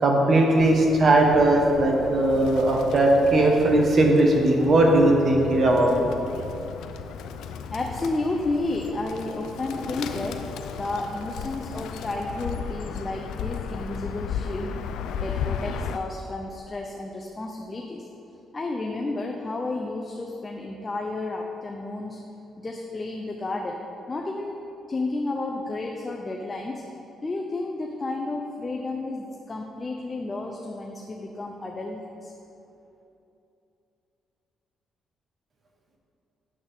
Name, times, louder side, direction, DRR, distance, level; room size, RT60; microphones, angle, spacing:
voice 1, 0.0-5.9, right 1 dB, 50° right, 1 dB, 1.4 m, -19 dB
Bird, 0.6-16.0, left 7 dB, 85° left, 0.4 m, -35 dB
voice 2, 7.7-10.4 10.7-14.7 15.2-18.0 18.5-22.2 22.6-23.8 24.1-24.6 24.9-26.8 27.2-32.3, left 2 dB, 25° left, 1 dB, 0.7 m, -31 dB
8.7 x 7.8 x 3.6 m, 2.8 s
cardioid pair, 90°, 0 cm